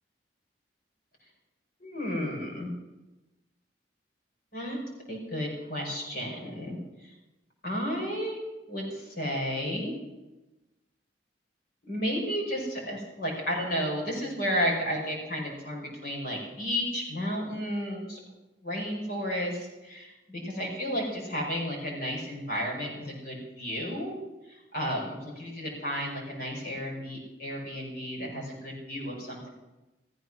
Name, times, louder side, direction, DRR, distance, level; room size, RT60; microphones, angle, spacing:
voice 1, 1.8-2.7 4.5-4.8 5.1-7.1 7.6-8.4 8.7-9.9 11.9-18.2 18.6-24.1 24.5-29.5, equal, 55° left, -1 dB, 5.5 m, -32 dB
15.0 x 14.5 x 6.3 m, 1.0 s
head